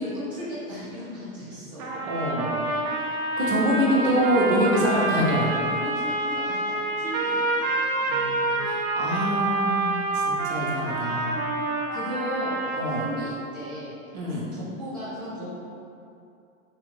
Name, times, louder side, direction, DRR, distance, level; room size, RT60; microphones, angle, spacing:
voice 1, 0.0-2.2 3.6-4.3 5.5-7.7 11.9-13.9 14.5-15.5, equal, 10° right, -11 dB, 0.5 m, -35 dB
sound 1, 1.8-13.5, right 2 dB, 85° right, 0.7 m, -27 dB
voice 2, 2.0-2.6 3.4-5.5 8.1-11.5 12.8-13.0 14.1-14.4, equal, 50° right, -4 dB, 0.8 m, -25 dB
3.0 x 2.4 x 3.1 m, 2.6 s
supercardioid pair, 165°, 42 cm